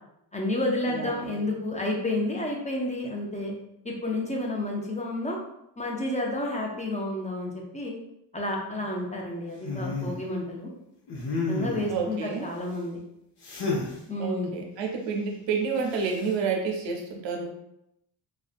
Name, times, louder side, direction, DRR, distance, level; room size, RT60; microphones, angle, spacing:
voice 1, 0.3-3.5 3.8-5.4 5.8-7.9 8.3-10.7 11.5-13.0 14.1-14.5, left 1 dB, 15° left, -1 dB, 0.5 m, -30 dB
voice 2, 0.9-1.5 11.9-12.5 14.2-17.5, right 5 dB, 90° right, 2 dB, 0.6 m, -30 dB
sound 1, 9.6-10.2 11.1-12.0 13.4-13.9 15.9-16.3, left 3 dB, 65° left, 0.8 m, -31 dB
2.5 x 2.2 x 2.4 m, 0.81 s
cardioid pair, 75°, 43 cm